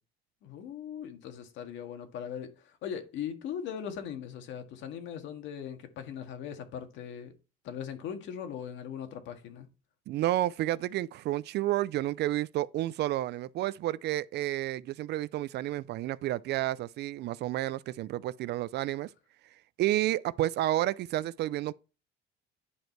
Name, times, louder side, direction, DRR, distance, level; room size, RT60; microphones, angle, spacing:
voice 1, 0.4-7.3 7.6-9.7, left 8 dB, 70° left, 1.8 m, -39 dB
voice 2, 10.1-19.1 19.8-21.7, right 14 dB, 55° right, 0.4 m, -30 dB
9.8 x 5.2 x 4.6 m
cardioid pair, 120°, 20 cm